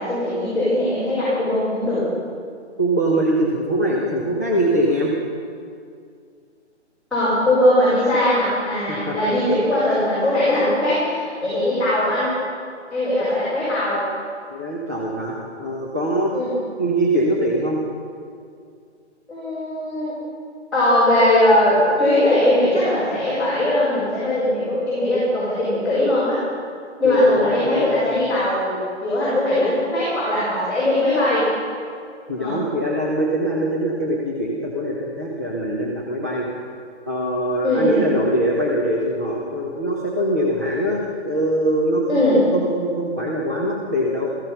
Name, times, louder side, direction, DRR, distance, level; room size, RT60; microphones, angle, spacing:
voice 1, 0.0-2.0 7.1-12.3 12.9-14.0 16.3-16.5 19.3-20.1 20.7-26.3 27.0-28.7 29.0-31.4 32.4-32.6 37.6-38.1 42.1-42.4, left 1 dB, ahead, -19 dB, 4.9 m, -20 dB
voice 2, 2.8-5.1 8.9-9.2 9.9-10.0 14.5-16.3 16.8-17.8 27.0-27.9 32.3-36.5 37.1-44.3, right 1 dB, 15° right, -4 dB, 0.6 m, -23 dB
16.0 x 15.0 x 5.5 m, 2.3 s
hypercardioid pair, 170°, 35 cm